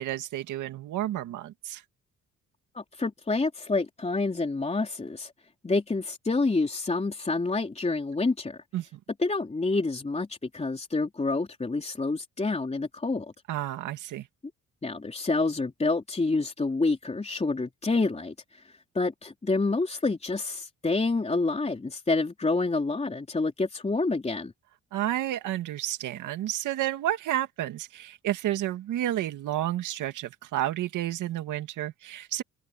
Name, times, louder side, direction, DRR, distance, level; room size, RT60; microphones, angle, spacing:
voice 1, 0.0-1.8 8.7-9.0 13.5-14.3 24.9-32.4, right 13 dB, 85° right, 2.2 m, -31 dB
voice 2, 2.7-5.3 5.6-8.6 9.2-13.3 14.8-18.6 18.9-24.5, left 3 dB, 20° left, 3.6 m, -28 dB
cardioid pair, 90°, 30 cm